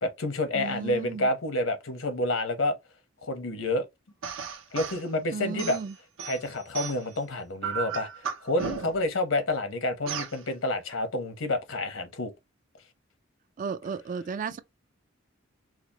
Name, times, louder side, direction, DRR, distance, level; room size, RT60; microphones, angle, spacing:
voice 1, 0.0-2.7 3.2-3.9 4.7-5.8 6.2-12.3, left 2 dB, 80° left, 0.9 m, -29 dB
voice 2, 0.5-1.3 5.3-5.9 13.6-14.6, right 5 dB, 40° right, 0.3 m, -34 dB
sound 1, 4.2-5.0 5.6-7.2 7.6-9.1 10.1-10.4, right 6 dB, 75° right, 0.7 m, -35 dB
4.8 x 2.1 x 2.8 m
head